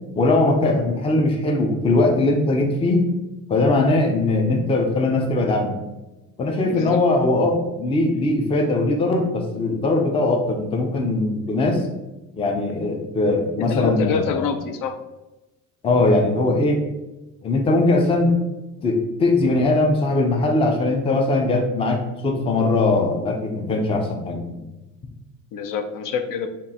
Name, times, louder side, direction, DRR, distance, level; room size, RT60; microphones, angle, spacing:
voice 1, 0.1-3.1 3.5-5.8 6.4-11.9 12.4-14.5 15.8-16.8 17.4-18.3 18.8-24.7, left 2 dB, 20° left, 3 dB, 0.3 m, -20 dB
voice 2, 6.7-7.0 13.6-15.0 25.5-26.5, left 6 dB, 80° left, 8 dB, 0.5 m, -26 dB
3.6 x 2.4 x 4.0 m, 1.0 s
cardioid pair, 170°, 33 cm